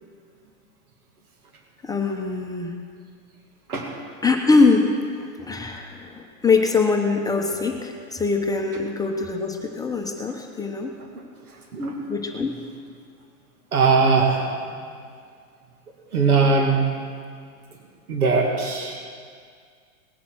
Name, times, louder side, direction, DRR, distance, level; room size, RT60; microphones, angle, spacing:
voice 1, 1.8-2.7 4.2-5.1 5.4-10.9 12.1-12.5, left 4 dB, 10° left, 2 dB, 0.9 m, -22 dB
voice 2, 13.7-14.5 16.1-16.8 18.1-19.0, right 4 dB, 85° right, 1 dB, 2.3 m, -20 dB
19.0 x 8.2 x 6.3 m, 2.1 s
hypercardioid pair, 120°, 43 cm